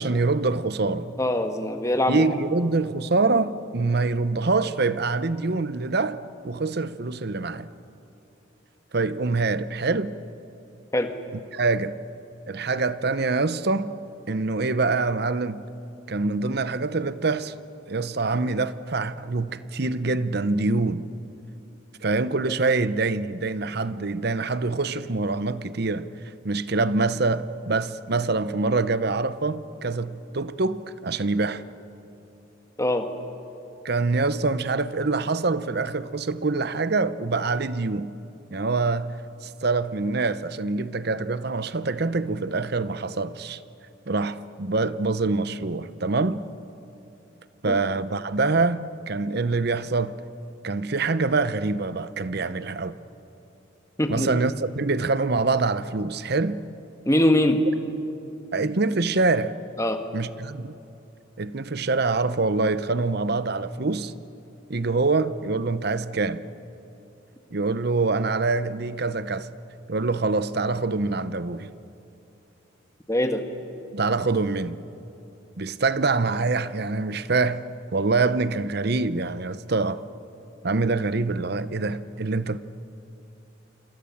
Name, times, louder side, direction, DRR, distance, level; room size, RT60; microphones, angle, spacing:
voice 1, 0.0-1.1 2.1-7.7 8.9-10.1 11.5-12.0 12.5-13.9 14.3-15.7 16.1-17.5 17.9-21.1 22.0-26.1 26.4-31.6 33.8-38.1 38.5-39.1 39.4-43.6 44.1-46.4 47.6-50.2 50.6-53.0 54.1-56.6 58.5-59.5 60.1-60.7 61.4-64.1 64.7-66.4 67.5-69.5 69.9-71.7 73.9-74.8 75.6-77.7 77.9-80.0 80.6-82.6, right 3 dB, 55° right, 0.8 m, -25 dB
voice 2, 1.2-2.2 10.9-11.1 32.8-33.1 47.7-47.8 54.0-54.3 57.0-57.6 59.8-60.0 73.1-73.4, left 1 dB, 15° left, 1.7 m, -22 dB
28.0 x 26.5 x 7.3 m
head